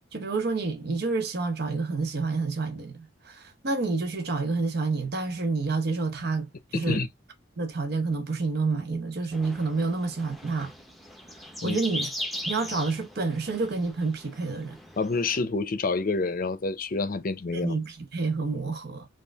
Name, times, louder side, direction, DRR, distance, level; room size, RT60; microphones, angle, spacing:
voice 1, 0.1-7.0 7.6-10.7 11.3-12.1 12.4-14.8 17.5-19.1, right 3 dB, 55° right, 0.8 m, -29 dB
voice 2, 6.7-7.1 11.6-11.8 15.0-17.7, left 3 dB, 50° left, 0.6 m, -28 dB
sound 1, 9.3-15.4, left 1 dB, ahead, 0.7 m, -39 dB
4.4 x 2.5 x 3.4 m
head